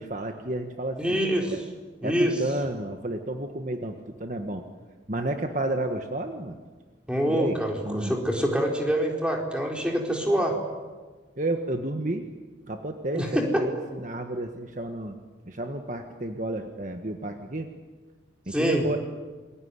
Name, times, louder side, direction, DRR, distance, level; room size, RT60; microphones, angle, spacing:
voice 1, 0.0-1.2 1.5-1.6 2.0-4.6 5.1-6.6 7.3-8.1 11.4-12.2 12.7-15.1 15.5-17.7 18.5-19.0, right 1 dB, 40° right, 5 dB, 1.5 m, -31 dB
voice 2, 1.0-1.5 2.0-2.3 7.1-10.6 13.1-13.6 18.5-18.8, equal, 5° right, 0 dB, 4.3 m, -25 dB
27.5 x 22.0 x 9.7 m, 1.4 s
head